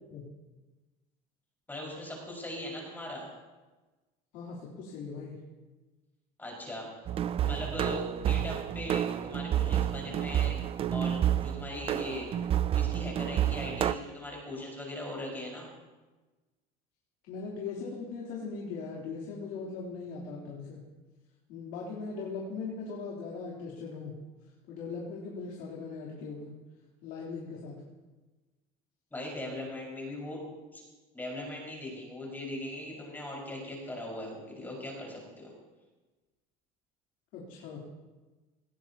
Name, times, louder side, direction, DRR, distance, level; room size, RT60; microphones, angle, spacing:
voice 1, 1.7-3.3 6.4-6.9 7.4-10.6 10.9-12.3 12.7-15.7 29.1-30.4 30.7-30.8 31.1-35.5, left 1 dB, 10° left, -3 dB, 5.4 m, -39 dB
voice 2, 4.3-5.4 17.3-20.8 21.5-24.2 24.7-26.5 27.0-27.8 37.3-37.8, left 4 dB, 75° left, -4 dB, 3.5 m, -39 dB
sound 1, 7.1-13.9, right 10 dB, 30° right, 0.5 m, -29 dB
18.5 x 17.5 x 2.9 m, 1.2 s
cardioid pair, 140°, 18 cm